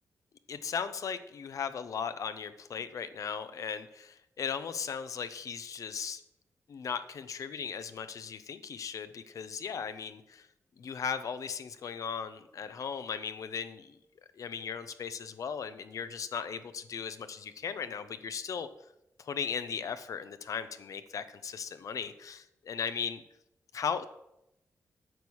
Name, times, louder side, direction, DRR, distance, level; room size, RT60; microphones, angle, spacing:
voice 1, 0.5-6.2 6.7-10.5 10.8-14.0 14.4-18.7 19.2-23.2 23.7-24.0, left 6 dB, 70° left, 12 dB, 0.8 m, -37 dB
9.1 x 6.3 x 7.2 m, 0.85 s
cardioid pair, 85°, 6 cm